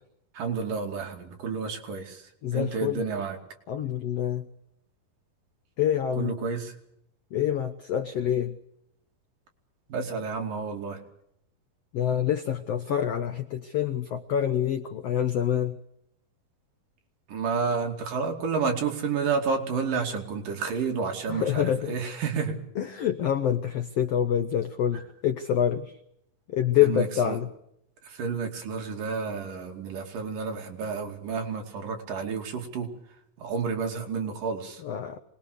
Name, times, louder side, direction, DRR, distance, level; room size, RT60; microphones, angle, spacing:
voice 1, 0.3-3.4 6.2-6.7 9.9-11.0 17.3-22.6 26.8-27.4 28.0-32.9 33.4-34.8, right 5 dB, 65° right, 2 dB, 4.3 m, -30 dB
voice 2, 2.4-3.0 3.7-4.5 5.8-6.4 7.3-8.6 11.9-15.8 21.3-22.0 22.8-26.0 26.5-27.5 34.8-35.2, left 10 dB, 85° left, 9 dB, 1.4 m, -26 dB
25.5 x 20.5 x 6.8 m, 0.76 s
omnidirectional pair, 4.3 m